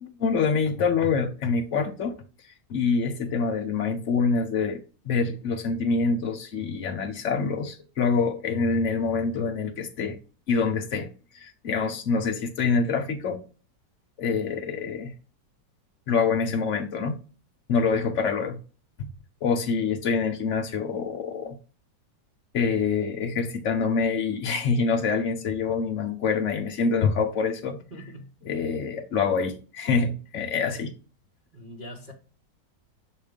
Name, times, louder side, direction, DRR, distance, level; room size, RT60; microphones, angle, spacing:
voice 1, 0.0-2.2 2.7-4.8 5.0-10.2 10.5-11.1 11.3-13.4 14.2-15.1 16.1-17.2 17.7-18.6 19.0-19.1 19.4-21.6 22.5-27.8 28.4-30.9, left 5 dB, 50° left, 1.1 m, -26 dB
voice 2, 27.9-28.3 31.5-32.1, equal, 30° right, 1.1 m, -42 dB
7.2 x 2.6 x 5.1 m
omnidirectional pair, 1.9 m